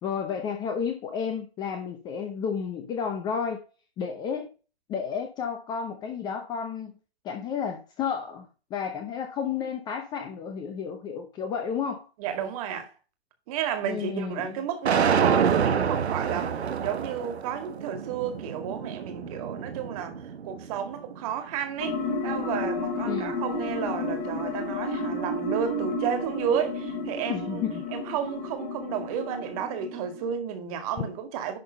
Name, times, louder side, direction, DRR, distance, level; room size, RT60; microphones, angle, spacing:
voice 1, 0.0-3.6 4.0-4.5 4.9-6.9 7.2-12.1 13.9-14.6 23.0-23.4 27.3-27.8, left 7 dB, 15° left, 0.7 m, -32 dB
voice 2, 12.2-12.9 13.5-22.0 22.2-27.6 27.9-31.6, right 8 dB, 35° right, 1.9 m, -32 dB
sound 1, 14.8-21.0, right 7 dB, 85° right, 1.0 m, -28 dB
sound 2, 21.8-30.3, left 2 dB, 45° left, 2.7 m, -32 dB
11.0 x 3.7 x 5.2 m
hypercardioid pair, 140°, 32 cm